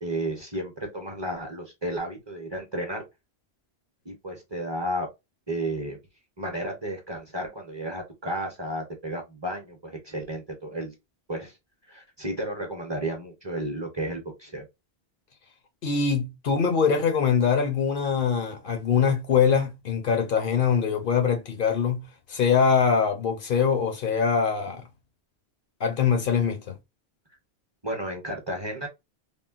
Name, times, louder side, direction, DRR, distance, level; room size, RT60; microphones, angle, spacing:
voice 1, 0.0-3.0 4.0-5.1 5.5-6.0 6.4-10.9 11.3-11.5 11.9-14.6 27.8-28.9, right 1 dB, 30° right, 0.7 m, -32 dB
voice 2, 15.8-24.8 25.8-26.8, left 6 dB, 60° left, 0.7 m, -23 dB
3.6 x 2.1 x 2.3 m
omnidirectional pair, 1.1 m